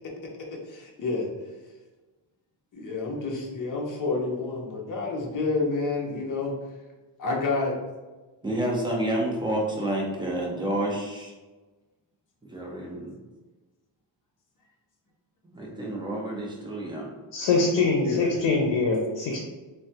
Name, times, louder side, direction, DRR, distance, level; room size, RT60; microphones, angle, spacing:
voice 1, 0.0-1.3 2.7-6.5 7.2-7.8 18.0-18.3, left 3 dB, 45° left, -1 dB, 0.6 m, -29 dB
voice 2, 8.4-11.3 12.4-13.1 15.5-17.1, right 1 dB, 10° right, -2 dB, 0.4 m, -29 dB
voice 3, 17.3-19.4, left 3 dB, 85° left, 0 dB, 0.6 m, -23 dB
3.2 x 2.2 x 2.7 m, 1.2 s
wide cardioid pair, 170°, 44 cm